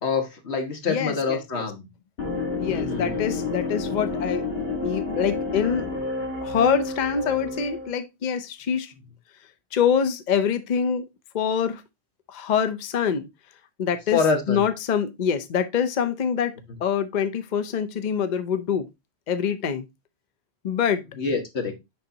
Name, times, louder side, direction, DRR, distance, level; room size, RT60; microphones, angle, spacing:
voice 1, 0.0-1.9 2.6-3.4 14.1-14.7 21.2-21.7, left 5 dB, 85° left, 1.6 m, -26 dB
voice 2, 0.9-1.6 2.6-4.4 4.8-5.9 6.4-8.9 9.7-11.1 11.3-11.8 12.3-13.3 13.8-14.2 14.5-16.5 16.8-18.9 19.3-19.9 20.6-21.0, left 7 dB, 50° left, 0.7 m, -25 dB
sound 1, 2.2-7.9, left 3 dB, 65° left, 1.7 m, -29 dB
6.8 x 5.2 x 2.7 m
omnidirectional pair, 1.1 m